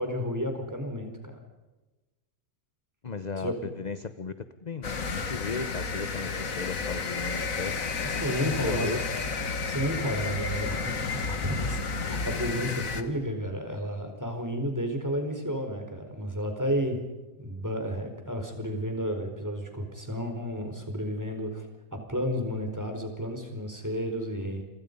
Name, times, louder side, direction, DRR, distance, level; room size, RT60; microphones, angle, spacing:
voice 1, 0.0-1.4 3.4-3.7 8.0-9.1 9.6-17.0 17.4-21.6 21.9-24.6, equal, 10° right, 4 dB, 4.5 m, -32 dB
voice 2, 3.0-9.0, left 4 dB, 35° left, 11 dB, 0.8 m, -36 dB
sound 1, 4.8-13.0, left 4 dB, 55° left, 2.0 m, -31 dB
29.0 x 25.0 x 5.4 m, 1.1 s
omnidirectional pair, 1.8 m